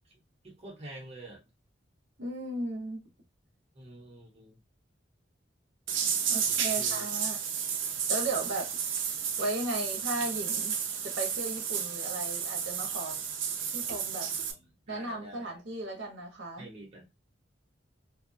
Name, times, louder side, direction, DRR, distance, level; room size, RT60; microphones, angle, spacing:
voice 1, 0.4-1.5 3.7-4.6 6.5-7.0 14.5-15.5 16.6-17.1, right 1 dB, 35° right, 1.0 m, -48 dB
voice 2, 2.2-3.0 6.3-7.4 8.1-8.8 9.4-10.8 11.0-13.2 13.7-14.3 14.9-16.7, right 2 dB, 70° right, 0.9 m, -36 dB
sound 1, 5.9-14.5, right 7 dB, 85° right, 0.5 m, -32 dB
2.6 x 2.2 x 2.6 m
head